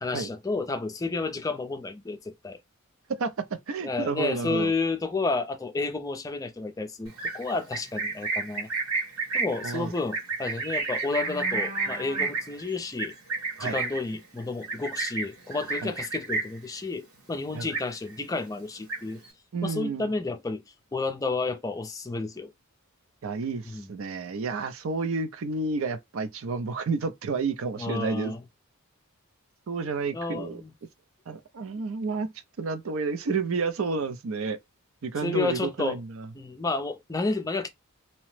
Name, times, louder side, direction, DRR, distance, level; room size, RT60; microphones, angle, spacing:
voice 1, 0.0-2.6 3.8-8.7 9.3-13.1 13.6-19.2 19.6-20.6 20.9-22.5 23.6-23.9 27.8-28.4 30.1-30.7 35.2-36.0 36.3-37.7, left 3 dB, 15° left, 0.4 m, -31 dB
voice 2, 3.2-4.7 9.6-9.9 13.6-13.8 15.8-15.9 17.5-17.7 19.5-20.1 23.2-28.3 29.7-30.6 31.3-32.3 32.6-34.6 35.0-36.3, right 4 dB, 65° right, 0.5 m, -30 dB
Livestock farm animals working animals, 7.1-16.7 17.0-17.3 17.6-18.3 18.6-19.3, right 3 dB, 85° right, 1.7 m, -31 dB
2.8 x 2.1 x 3.1 m
head